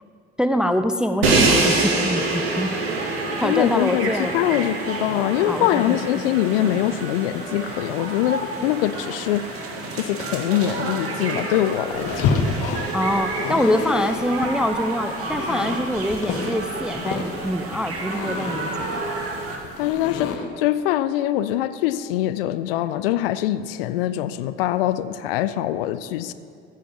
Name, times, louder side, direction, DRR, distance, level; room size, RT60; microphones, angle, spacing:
voice 1, 0.4-2.8 3.4-4.3 5.5-6.0 12.9-18.9, equal, 5° right, 9 dB, 0.3 m, -24 dB
Crash cymbal, 1.2-7.2, right 3 dB, 75° right, 1.2 m, -24 dB
sound 1, 2.1-19.6, right 3 dB, 45° right, 1.7 m, -31 dB
voice 2, 3.1-9.5 9.9-12.4 19.8-26.3, left 13 dB, 65° left, 13 dB, 0.5 m, -23 dB
sound 2, 11.9-20.4, left 4 dB, 50° left, 1.1 m, -29 dB
15.0 x 5.0 x 5.9 m, 2.2 s
figure-of-eight pair, 55°, 31 cm